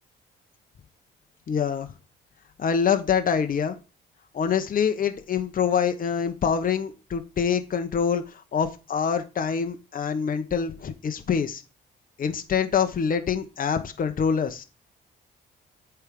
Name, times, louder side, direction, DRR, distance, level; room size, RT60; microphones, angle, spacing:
voice 1, 1.5-1.9 2.6-3.8 4.3-8.2 8.5-11.6 12.2-14.6, left 7 dB, 45° left, 7 dB, 1.0 m, -25 dB
8.1 x 3.5 x 5.3 m, 0.31 s
cardioid pair, 90°, 20 cm